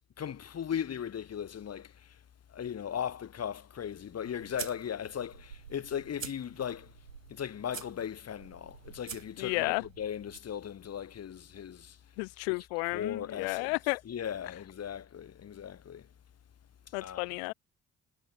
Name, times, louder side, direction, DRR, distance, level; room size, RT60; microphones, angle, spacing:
voice 1, 0.2-1.9 2.5-6.9 7.3-12.0 12.5-12.6 12.9-13.7 14.1-16.0 17.0-17.3, left 9 dB, 40° left, 1.8 m, -37 dB
sound 1, 3.8-10.4, right 7 dB, 85° right, 3.3 m, -47 dB
voice 2, 9.4-9.8 12.2-14.0 16.9-17.5, left 35 dB, 70° left, 0.8 m, -32 dB
figure-of-eight pair, 40°, 38 cm